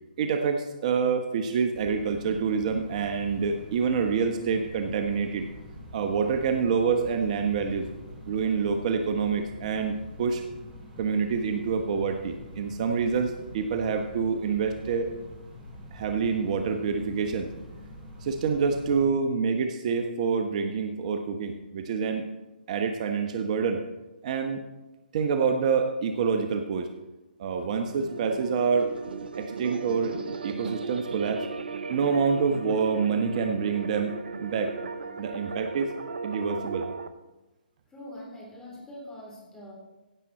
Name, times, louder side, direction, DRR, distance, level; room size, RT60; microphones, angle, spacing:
voice 1, 0.2-5.5 5.9-7.9 8.3-10.4 11.0-15.1 15.9-17.5 18.2-22.3 22.7-23.8 24.2-24.6 25.1-26.9 27.4-28.9 29.4-30.2 30.4-31.5 31.9-34.7 35.2-35.9 36.2-36.9, right 5 dB, 45° right, 6 dB, 1.0 m, -27 dB
sound 1, 1.7-19.0, left 1 dB, 20° right, 4.6 m, -45 dB
sound 2, 27.5-37.1, right 5 dB, 70° right, 0.9 m, -37 dB
voice 2, 37.9-39.7, left 1 dB, 10° left, -1 dB, 3.4 m, -43 dB
16.0 x 7.6 x 4.2 m, 1.1 s
hypercardioid pair, 140°, 5 cm